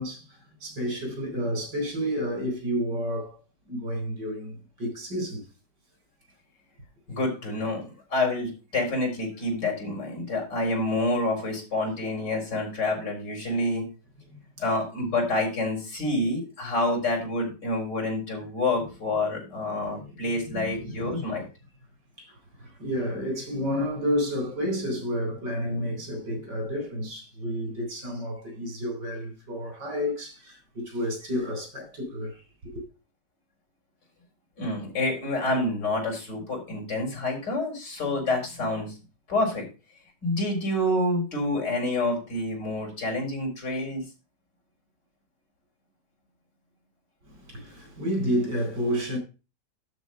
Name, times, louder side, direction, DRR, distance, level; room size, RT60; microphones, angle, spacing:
voice 1, 0.0-5.5 14.3-14.4 19.2-21.2 22.2-32.8 47.2-49.2, equal, 85° right, 4.7 m, -31 dB
voice 2, 7.1-13.9 14.6-21.4 34.6-38.9 39.3-39.6 40.2-44.0, left 2 dB, 85° left, 5.0 m, -28 dB
12.0 x 4.2 x 6.2 m
omnidirectional pair, 1.8 m